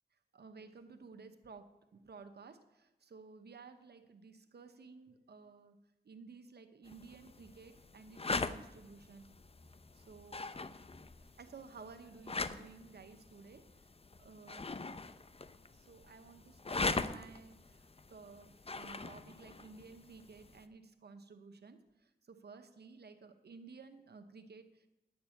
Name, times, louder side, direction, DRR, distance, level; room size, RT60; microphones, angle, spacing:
voice 1, 0.3-5.8 6.0-9.3 9.9-10.5 11.2-13.8 14.2-14.7 15.7-24.9, right 4 dB, 85° right, 8 dB, 0.9 m, -55 dB
sound 1, 6.9-20.7, left 3 dB, 35° left, 0.7 m, -42 dB
9.8 x 6.8 x 9.0 m, 0.92 s
cardioid pair, 45°, 16 cm